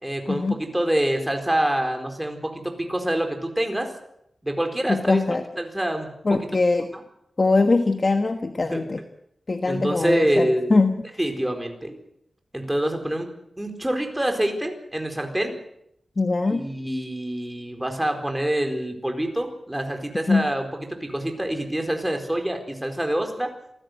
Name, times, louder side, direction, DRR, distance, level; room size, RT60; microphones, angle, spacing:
voice 1, 0.0-3.9 4.4-5.2 5.6-6.1 6.9-7.0 8.7-8.8 9.6-10.7 11.2-12.0 12.5-13.3 13.6-15.5 16.5-23.5, right 1 dB, 10° right, 5 dB, 4.3 m, -26 dB
voice 2, 4.9-5.4 6.2-6.9 7.4-9.0 9.5-11.2 16.2-16.7 20.3-20.5, left 3 dB, 40° left, 7 dB, 1.3 m, -22 dB
27.0 x 16.0 x 8.1 m, 0.77 s
wide cardioid pair, 120°, 0 cm